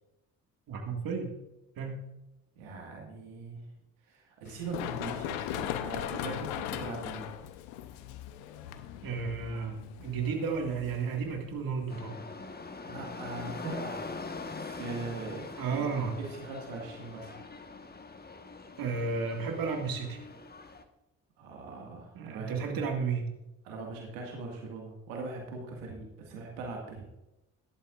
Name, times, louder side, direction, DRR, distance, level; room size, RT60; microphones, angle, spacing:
voice 1, 0.7-1.4 1.8-2.1 9.0-12.2 15.6-16.2 18.8-20.2 22.2-23.3, right 5 dB, 60° right, 3 dB, 2.0 m, -33 dB
voice 2, 2.6-3.6 4.0-7.3 12.9-14.0 14.4-15.9 16.2-17.4 21.4-22.8 23.6-27.1, right 3 dB, 85° right, 0 dB, 2.0 m, -41 dB
Run, 4.4-12.0, left 10 dB, 80° left, 0.9 m, -39 dB
sound 1, 11.9-20.8, left 3 dB, 25° left, 1.4 m, -43 dB
13.5 x 11.5 x 2.5 m, 0.95 s
hypercardioid pair, 50°, 39 cm